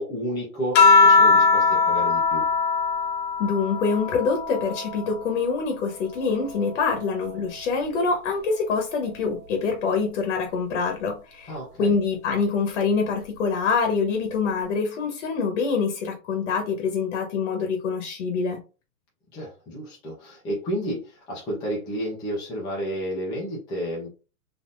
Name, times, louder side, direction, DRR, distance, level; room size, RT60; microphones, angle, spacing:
voice 1, 0.0-2.5 11.5-11.9 19.3-24.1, equal, 10° left, 0.5 m, -31 dB
sound 1, 0.7-5.5 6.0-7.7 8.9-9.4, left 4 dB, 40° left, 0.9 m, -22 dB
voice 2, 3.4-11.5 11.8-18.6, left 5 dB, 55° left, 1.1 m, -25 dB
3.7 x 2.8 x 2.5 m
hypercardioid pair, 155°, 43 cm